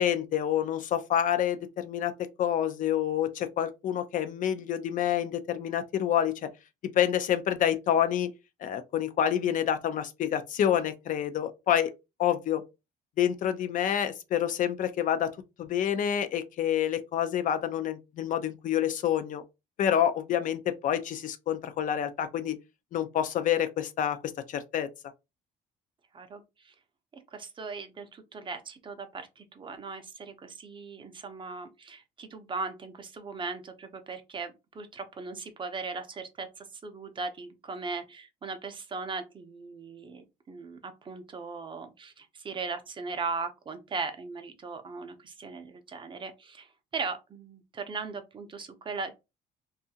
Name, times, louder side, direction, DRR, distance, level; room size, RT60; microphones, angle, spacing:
voice 1, 0.0-2.1 2.4-6.5 6.8-8.3 8.6-11.9 12.2-12.6 13.2-15.3 15.6-19.4 19.8-22.6 22.9-24.2 24.5-24.9, left 10 dB, 50° left, 0.5 m, -28 dB
voice 2, 26.1-26.7 27.1-49.1, right 4 dB, 30° right, 0.5 m, -38 dB
2.6 x 2.4 x 2.7 m
cardioid pair, 110°, 17 cm